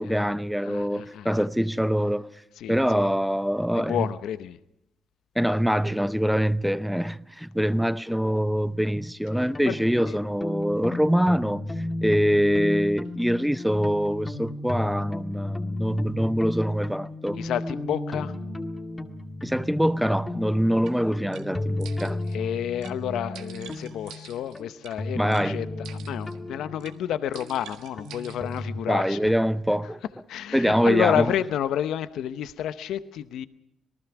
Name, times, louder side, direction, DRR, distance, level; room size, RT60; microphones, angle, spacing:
voice 1, 0.0-2.3 2.7-4.1 5.4-11.6 12.0-17.4 19.4-22.2 25.1-25.6 28.9-30.0 30.5-31.3, equal, ahead, 0.7 m, -24 dB
voice 2, 0.7-1.4 2.6-3.1 3.7-4.6 9.4-9.8 10.1-10.2 17.4-18.3 22.3-25.7 25.9-29.3 30.3-33.5, left 10 dB, 80° left, 0.8 m, -30 dB
sound 1, 9.3-28.8, left 2 dB, 20° left, 1.9 m, -34 dB
sound 2, 20.9-21.0 21.3-21.5 21.8-22.4 22.8-23.0 23.3-25.0 25.3-25.5 25.8-26.4 26.8-27.0 27.3-28.6, right 10 dB, 90° right, 1.6 m, -47 dB
26.5 x 19.0 x 6.0 m
cardioid pair, 90°, 0 cm